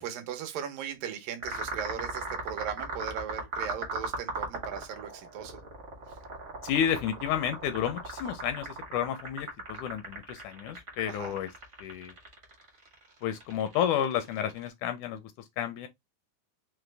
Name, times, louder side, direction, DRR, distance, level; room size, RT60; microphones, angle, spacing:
voice 1, 0.0-5.6 11.1-11.3, right 8 dB, 85° right, 2.5 m, -38 dB
sound 1, 1.4-14.7, right 3 dB, 55° right, 0.7 m, -38 dB
voice 2, 6.6-11.5 11.8-12.1 13.2-15.2 15.6-15.9, left 9 dB, 80° left, 1.8 m, -31 dB
5.8 x 2.0 x 3.2 m
omnidirectional pair, 3.8 m